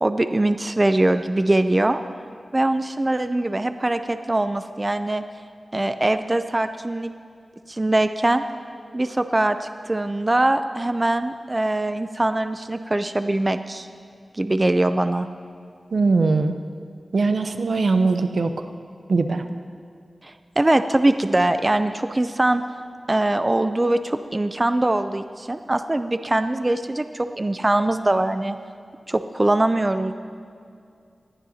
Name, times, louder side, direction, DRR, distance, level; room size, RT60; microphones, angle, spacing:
voice 1, 0.0-2.0 2.5-5.2 5.7-7.1 7.7-8.4 8.9-13.9 14.3-15.3 20.2-22.6 23.1-28.6 29.1-30.1, right 1 dB, 25° right, 9 dB, 0.4 m, -22 dB
voice 2, 15.9-16.5 17.1-18.6 19.1-19.4, right 3 dB, 75° right, 8 dB, 0.7 m, -20 dB
20.0 x 14.0 x 2.8 m, 2.3 s
wide cardioid pair, 85°, 0 cm